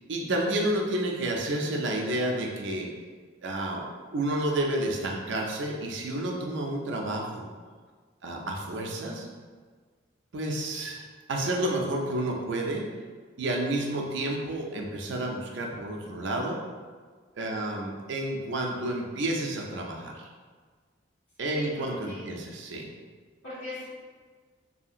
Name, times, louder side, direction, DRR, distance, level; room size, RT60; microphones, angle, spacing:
voice 1, 0.1-2.9 3.4-3.9 4.1-7.5 8.2-9.3 10.3-11.0 11.3-12.8 13.4-16.6 17.4-20.1 21.4-22.9, right 1 dB, 70° right, 0 dB, 0.4 m, -30 dB
voice 2, 23.4-23.9, left 2 dB, 65° left, -15 dB, 1.4 m, -41 dB
2.7 x 2.7 x 2.4 m, 1.5 s
head